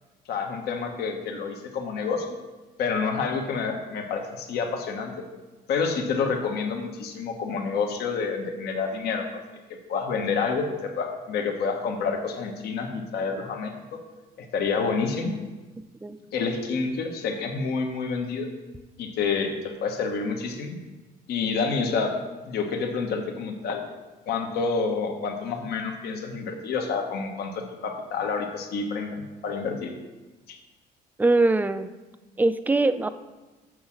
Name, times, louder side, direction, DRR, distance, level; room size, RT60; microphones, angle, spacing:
voice 1, 0.3-2.4 2.8-5.2 5.7-9.2 9.9-14.0 14.4-15.3 16.3-18.5 19.0-20.8 21.3-22.2 22.5-23.8 24.3-29.9 30.5-30.6, left 5 dB, 70° left, 4 dB, 1.2 m, -28 dB
voice 2, 31.2-31.9 32.4-33.1, right 2 dB, 10° right, 11 dB, 0.4 m, -22 dB
6.4 x 6.2 x 7.3 m, 1.2 s
cardioid pair, 110°, 17 cm